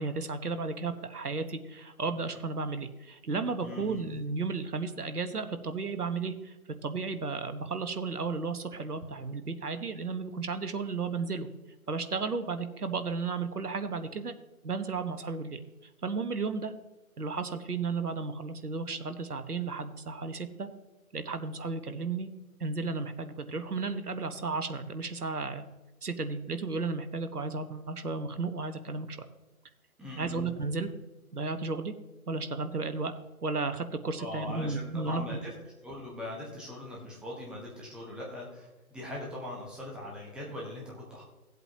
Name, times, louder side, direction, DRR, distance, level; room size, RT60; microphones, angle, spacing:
voice 1, 0.0-6.5 6.8-11.5 11.9-14.3 14.6-15.6 16.0-16.7 17.2-20.7 21.1-22.3 22.6-25.6 26.0-29.3 30.2-30.9 31.3-31.9 32.3-33.1 33.4-35.4, right 4 dB, 85° right, 9 dB, 1.2 m, -33 dB
voice 2, 3.6-4.0 30.0-30.4 34.2-35.5 35.8-41.2, left 1 dB, ahead, -3 dB, 1.0 m, -41 dB
15.5 x 8.0 x 2.8 m, 1.1 s
figure-of-eight pair, 145°, 45 cm